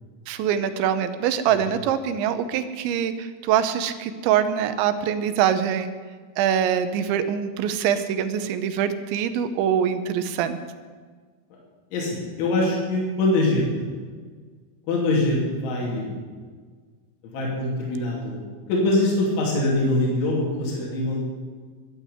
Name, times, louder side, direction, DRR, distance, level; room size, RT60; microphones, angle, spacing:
voice 1, 0.3-5.9 6.4-10.6, right 9 dB, 85° right, 10 dB, 3.0 m, -24 dB
voice 2, 11.9-13.9 14.9-16.3 17.3-21.2, left 2 dB, 75° left, -3 dB, 5.2 m, -23 dB
12.0 x 10.0 x 9.5 m, 1.5 s
omnidirectional pair, 5.5 m